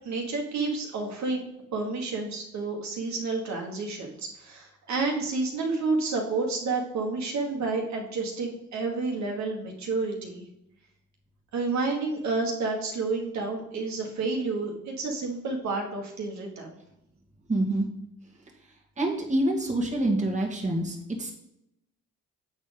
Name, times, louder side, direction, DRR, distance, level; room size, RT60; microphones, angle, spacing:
voice 1, 0.0-1.4 1.7-10.5 11.5-16.7, right 3 dB, 65° right, 1 dB, 1.6 m, -30 dB
voice 2, 17.5-17.9 19.0-21.3, right 1 dB, 25° right, -1 dB, 1.7 m, -26 dB
7.8 x 4.3 x 5.2 m, 0.82 s
cardioid pair, 90°, 30 cm